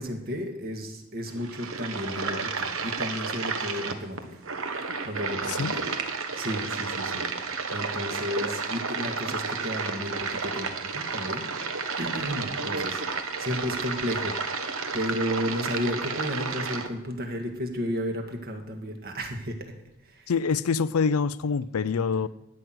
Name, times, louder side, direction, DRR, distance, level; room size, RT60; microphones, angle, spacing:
voice 1, 0.0-4.4 5.1-5.9 6.4-11.5 12.0-14.4 14.9-19.7 20.0-20.3, equal, 45° right, 1.8 m, -33 dB
sound 1, 1.3-16.9, right 4 dB, 65° right, 1.2 m, -31 dB
voice 2, 20.3-22.3, left 5 dB, 90° left, 0.5 m, -25 dB
13.0 x 6.1 x 9.3 m
head